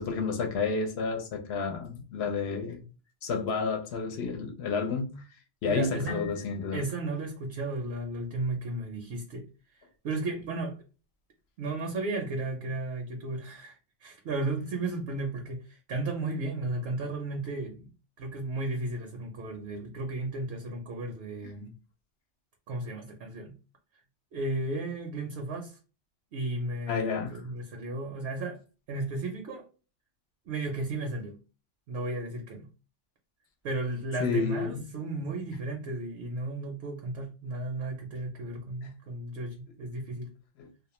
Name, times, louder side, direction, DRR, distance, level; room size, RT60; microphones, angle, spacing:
voice 1, 0.0-2.8 3.2-5.2 5.6-6.8 21.6-21.7 26.9-27.4 34.2-34.9 40.6-40.7, left 5 dB, 65° left, 0.8 m, -30 dB
voice 2, 5.6-6.3 6.7-10.8 11.6-17.9 18.2-21.7 22.7-23.5 24.3-25.8 26.3-28.6 28.9-29.7 30.5-31.4 31.9-32.7 33.6-40.3, right 2 dB, 65° right, 0.8 m, -34 dB
Piano, 6.1-7.9, left 7 dB, 50° left, 0.4 m, -47 dB
2.3 x 2.0 x 2.9 m
omnidirectional pair, 1.2 m